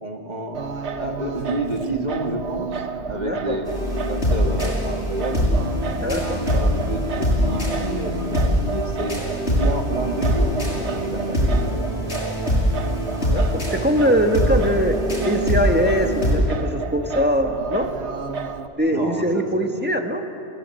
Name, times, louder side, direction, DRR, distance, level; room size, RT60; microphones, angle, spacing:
voice 1, 0.0-5.5 6.5-12.3 18.9-19.7, right 2 dB, 40° right, 2 dB, 2.2 m, -30 dB
Singing, 0.5-18.7, right 5 dB, 75° right, 1.3 m, -32 dB
voice 2, 3.2-3.6 5.9-6.4 13.3-15.0 15.2-17.9 18.8-20.3, equal, 10° right, 3 dB, 1.6 m, -22 dB
sound 1, 3.7-16.4, equal, 75° left, 6.6 m, -23 dB
29.5 x 16.5 x 7.8 m, 2.8 s
omnidirectional pair, 1.1 m